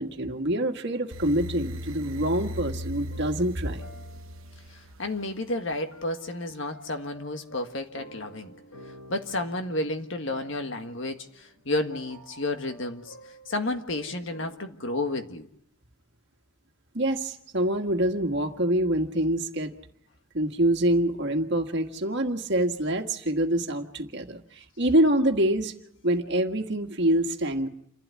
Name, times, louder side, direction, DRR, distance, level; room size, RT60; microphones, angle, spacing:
voice 1, 0.0-3.8 16.9-19.7 20.3-25.7 26.0-27.7, right 1 dB, 55° right, 5 dB, 1.7 m, -25 dB
sound 1, 1.1-5.2, equal, 70° right, 1.0 m, -37 dB
sound 2, 3.0-14.6, equal, 80° left, 3.0 m, -50 dB
voice 2, 4.7-8.5 9.1-13.1 13.5-15.5, left 2 dB, 60° left, 6 dB, 1.7 m, -31 dB
28.5 x 12.0 x 9.7 m, 0.72 s
head